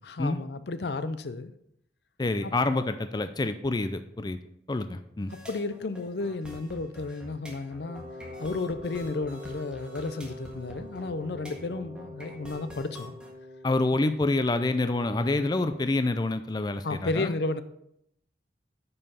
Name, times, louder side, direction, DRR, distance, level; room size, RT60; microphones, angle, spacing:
voice 1, 0.0-1.5 5.5-8.0 8.4-13.1 16.8-17.6, left 3 dB, 70° left, 13 dB, 0.6 m, -32 dB
voice 2, 2.2-4.4 4.7-5.3 13.6-17.3, left 2 dB, 25° left, 10 dB, 0.4 m, -27 dB
sound 1, 5.3-13.3, left 1 dB, 5° right, 1.6 m, -47 dB
Wind instrument woodwind instrument, 7.8-15.8, left 1 dB, 50° left, 3.1 m, -45 dB
9.6 x 5.6 x 5.5 m, 0.77 s
head